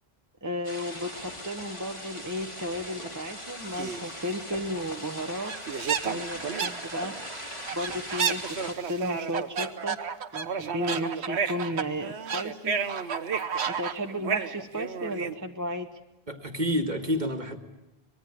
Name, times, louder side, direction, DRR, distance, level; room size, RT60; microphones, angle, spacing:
voice 1, 0.4-5.5 6.0-7.1 7.7-10.0 10.3-12.8 13.7-15.9, equal, 20° right, 4 dB, 1.0 m, -34 dB
sound 1, 0.6-8.7, equal, 30° left, 3.4 m, -40 dB
sound 2, 3.8-4.1 4.8-4.9 5.1-5.2 5.4-15.3, right 6 dB, 85° right, 1.3 m, -31 dB
voice 2, 16.3-17.6, equal, 45° right, 7 dB, 1.9 m, -28 dB
24.5 x 20.0 x 8.6 m, 0.93 s
omnidirectional pair, 1.1 m